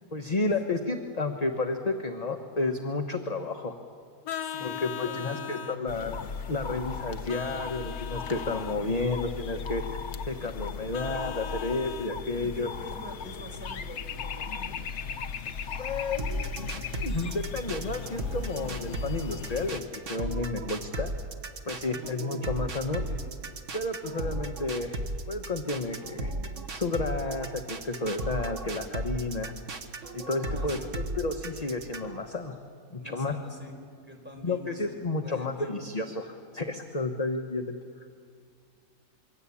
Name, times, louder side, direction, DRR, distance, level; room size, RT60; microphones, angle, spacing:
voice 1, 0.1-3.7 4.6-6.2 6.5-9.8 10.3-12.7 15.8-21.1 21.6-23.1 23.7-25.0 25.3-26.3 26.7-29.5 30.1-32.6 32.9-33.4 34.4-37.8, left 3 dB, 30° left, 4 dB, 1.2 m, -31 dB
Vehicle horn car horn honking, 4.3-5.8 7.3-8.8 10.9-12.1, left 10 dB, 75° left, 1.3 m, -38 dB
voice 2, 4.4-5.9 12.5-14.8 21.8-22.1 23.1-23.3 30.5-31.0 33.0-33.7 34.0-35.8, equal, 5° right, 2 dB, 4.7 m, -46 dB
sound 1, 5.9-19.8, left 6 dB, 55° left, 1.1 m, -37 dB
sound 2, 16.2-32.2, right 2 dB, 55° right, 1.8 m, -35 dB
27.0 x 23.5 x 8.5 m, 2.1 s
omnidirectional pair, 1.5 m